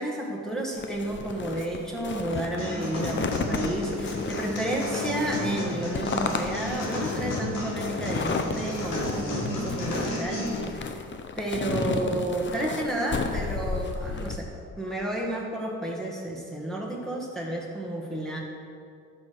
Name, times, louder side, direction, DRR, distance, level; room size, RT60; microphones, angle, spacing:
voice 1, 0.0-10.5 10.7-10.9 11.4-14.5 14.8-18.4, right 1 dB, ahead, -3 dB, 1.7 m, -31 dB
sound 1, 0.8-14.4, left 5 dB, 40° left, 0.8 m, -33 dB
sound 2, 2.6-10.6, left 1 dB, 85° left, 2.0 m, -32 dB
12.0 x 6.4 x 4.7 m, 2.3 s
cardioid pair, 90°, 30 cm